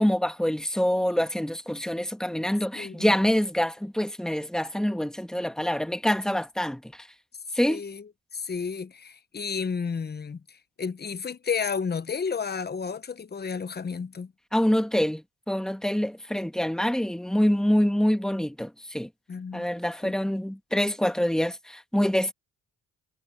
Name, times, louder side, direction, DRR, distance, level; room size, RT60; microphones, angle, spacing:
voice 1, 0.0-6.9 7.5-7.8 14.5-19.1 19.5-22.3, equal, ahead, 1.9 m, -25 dB
voice 2, 2.7-3.1 7.6-14.3 19.3-19.7 20.0-20.1, left 5 dB, 35° left, 1.1 m, -32 dB
cardioid pair, 75°, 29 cm